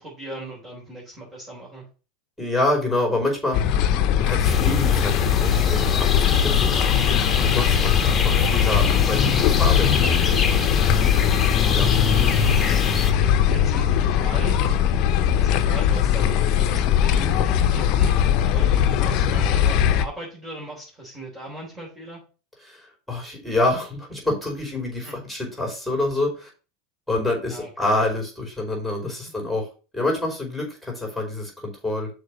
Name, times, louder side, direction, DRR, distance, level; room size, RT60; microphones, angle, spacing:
voice 1, 0.0-1.8 7.5-7.8 12.9-14.5 15.3-18.2 18.4-22.2 25.0-25.1 27.5-27.9 29.3-29.4, right 2 dB, 20° right, -5 dB, 4.0 m, -38 dB
voice 2, 2.4-3.6 4.2-6.8 7.4-11.0 11.7-12.0 22.6-26.5 27.1-29.7 29.9-32.1, left 2 dB, ahead, 1 dB, 5.1 m, -27 dB
sound 1, 3.5-20.0, left 9 dB, 50° left, 0.8 m, -20 dB
sound 2, 4.4-13.1, left 4 dB, 20° left, 1.5 m, -26 dB
6.4 x 5.2 x 6.2 m, 0.34 s
supercardioid pair, 120°, 0 cm